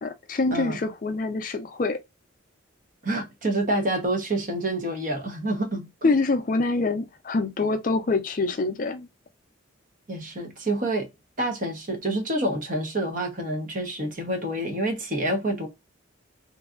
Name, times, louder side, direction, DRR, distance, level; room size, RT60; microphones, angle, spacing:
voice 1, 0.0-2.0 6.0-9.1, left 3 dB, 40° left, 0.4 m, -25 dB
voice 2, 3.0-6.1 10.1-11.1 11.4-15.7, right 1 dB, 40° right, 0.9 m, -27 dB
3.1 x 2.6 x 2.4 m
head